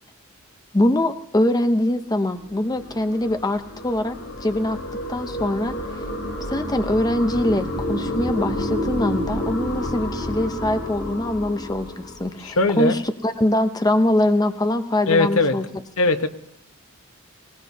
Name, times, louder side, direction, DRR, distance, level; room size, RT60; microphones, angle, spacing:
voice 1, 0.7-4.2 4.4-4.8 5.1-6.0 6.5-15.7, left 1 dB, 20° left, 8 dB, 0.6 m, -23 dB
sound 1, 2.3-12.7, left 1 dB, 55° left, 2.8 m, -30 dB
voice 2, 12.4-13.0 15.1-15.6 16.0-16.3, left 3 dB, 80° left, 8 dB, 1.0 m, -19 dB
19.5 x 18.5 x 2.7 m, 0.78 s
head